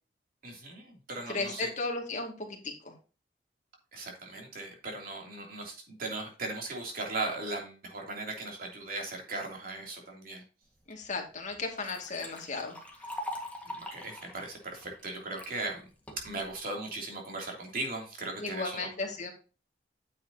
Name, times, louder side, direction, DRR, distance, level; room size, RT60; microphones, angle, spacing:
voice 1, 0.4-1.7 3.9-10.4 13.8-15.9 16.2-18.9, right 2 dB, 55° right, 0 dB, 3.1 m, -38 dB
voice 2, 1.3-2.9 10.9-13.2 18.4-19.3, left 3 dB, 45° left, 2 dB, 2.3 m, -35 dB
Liquid, 11.0-11.1 11.5-15.5 16.1-16.5, left 1 dB, 10° left, 1.7 m, -42 dB
9.4 x 7.6 x 2.9 m, 0.34 s
head